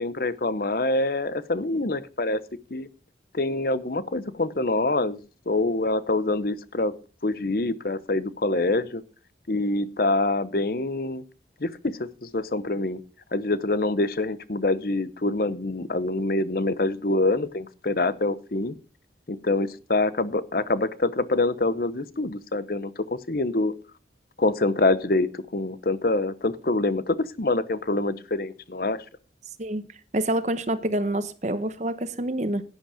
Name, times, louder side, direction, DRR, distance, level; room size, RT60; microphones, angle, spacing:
voice 1, 0.0-2.4 2.7-2.9 3.3-5.2 5.5-6.9 7.2-9.0 9.5-11.2 11.6-13.0 13.3-18.7 19.3-23.7 24.4-29.0, left 2 dB, 55° left, 0.8 m, -25 dB
voice 2, 30.1-32.6, right 1 dB, 40° right, 1.0 m, -27 dB
11.0 x 10.5 x 5.0 m
head